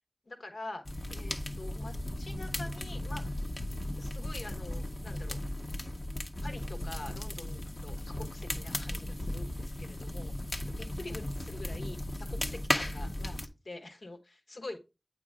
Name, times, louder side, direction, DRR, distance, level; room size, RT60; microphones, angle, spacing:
voice 1, 0.2-0.8 1.1-3.3 4.0-5.4 6.4-10.3 10.7-12.0 12.3-14.8, left 2 dB, 90° left, 4 dB, 1.3 m, -45 dB
sound 1, 0.9-13.5, left 1 dB, 55° left, 0.8 m, -36 dB
8.5 x 3.0 x 4.8 m, 0.27 s
wide cardioid pair, 45°, 0 cm